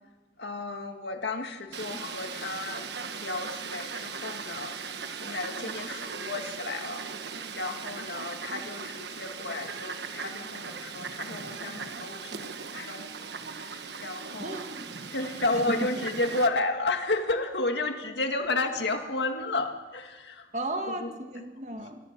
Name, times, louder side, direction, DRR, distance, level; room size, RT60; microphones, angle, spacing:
voice 1, 0.4-2.9 3.2-7.1 7.6-13.3 13.6-14.6 15.1-20.5 20.9-21.1, left 2 dB, 80° left, 5 dB, 2.0 m, -32 dB
Fowl, 1.7-16.5, right 5 dB, 75° right, 1.3 m, -38 dB
voice 2, 14.4-14.9 15.7-15.8 20.5-22.0, right 1 dB, 40° right, 5 dB, 1.8 m, -34 dB
25.0 x 15.5 x 7.4 m, 1.3 s
head